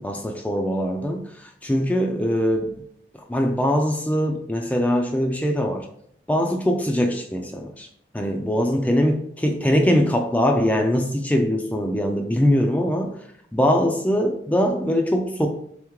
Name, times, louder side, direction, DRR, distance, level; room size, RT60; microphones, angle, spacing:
voice 1, 0.0-2.7 3.3-5.9 6.3-7.9 8.1-13.2 13.5-15.5, equal, 10° left, 3 dB, 0.3 m, -22 dB
3.6 x 3.6 x 3.0 m, 0.68 s
head